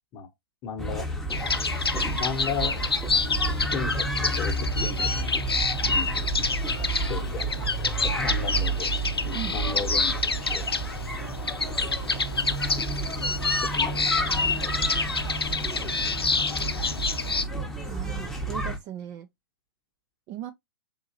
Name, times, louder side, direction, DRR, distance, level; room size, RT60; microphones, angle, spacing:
voice 1, 0.6-1.1 1.3-1.5 2.2-2.7 3.7-4.1 4.4-5.3 5.9-6.3 7.1-8.9 9.2-10.2 10.5-10.6 13.7-14.4 16.8-16.9, left 6 dB, 25° left, 0.9 m, -35 dB
sound 1, 0.8-18.8, right 2 dB, 5° left, 0.8 m, -30 dB
sound 2, 1.3-17.4, left 4 dB, 90° left, 0.6 m, -28 dB
voice 2, 17.8-19.3 20.3-20.5, right 11 dB, 25° right, 0.4 m, -37 dB
3.8 x 2.7 x 2.6 m
figure-of-eight pair, 115°, 12 cm